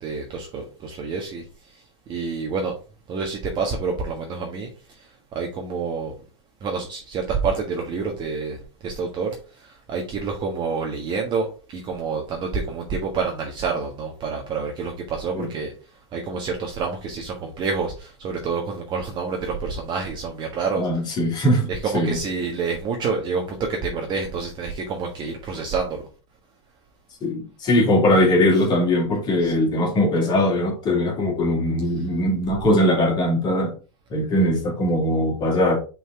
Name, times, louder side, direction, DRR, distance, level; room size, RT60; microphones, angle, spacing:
voice 1, 0.0-2.7 3.1-6.1 6.6-20.9 21.7-26.1 29.4-29.5, right 5 dB, 30° right, 1.4 m, -28 dB
voice 2, 20.7-21.7 21.9-22.2 27.2-33.7 34.1-35.8, left 1 dB, 30° left, 2.6 m, -20 dB
5.4 x 4.1 x 4.7 m
hypercardioid pair, 125°, 15 cm